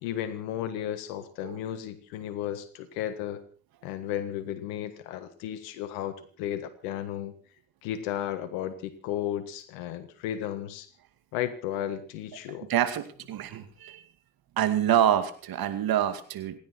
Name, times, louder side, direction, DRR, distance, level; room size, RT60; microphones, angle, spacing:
voice 1, 0.0-3.4 3.8-7.3 7.8-10.9 11.3-12.7, left 11 dB, 75° left, 10 dB, 1.6 m, -34 dB
voice 2, 12.7-14.0 14.6-16.6, right 10 dB, 60° right, 10 dB, 2.3 m, -26 dB
27.5 x 10.5 x 4.4 m, 0.41 s
hypercardioid pair, 50°, 40 cm